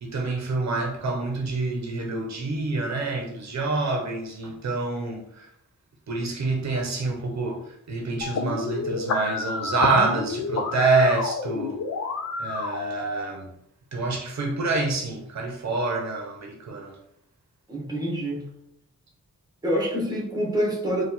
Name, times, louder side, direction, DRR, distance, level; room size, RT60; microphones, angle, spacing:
voice 1, 0.0-5.5 6.1-11.8 12.4-13.5 13.9-17.0, right 3 dB, 65° right, 0.7 m, -27 dB
sound 1, 8.2-13.2, left 4 dB, 65° left, 0.5 m, -30 dB
voice 2, 17.7-18.4 19.6-21.0, equal, 15° right, 1.0 m, -26 dB
4.4 x 2.3 x 4.0 m
wide cardioid pair, 175°, 29 cm